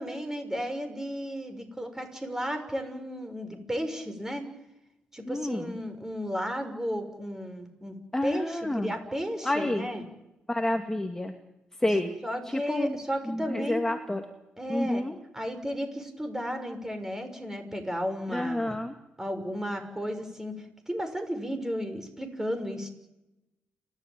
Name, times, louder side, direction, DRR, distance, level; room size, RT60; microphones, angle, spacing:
voice 1, 0.0-4.5 5.1-8.0 8.2-10.0 12.2-13.8 14.6-15.0 15.3-18.8 19.2-20.5 20.9-22.9, equal, 10° right, 7 dB, 6.3 m, -33 dB
voice 2, 5.3-5.7 8.1-8.9 9.4-9.9 10.5-11.3 11.8-12.1 12.5-13.0 13.3-14.2 14.7-15.2 18.3-18.9, left 1 dB, 10° left, 4 dB, 2.3 m, -29 dB
30.0 x 13.0 x 9.1 m, 0.91 s
cardioid pair, 75°, 4 cm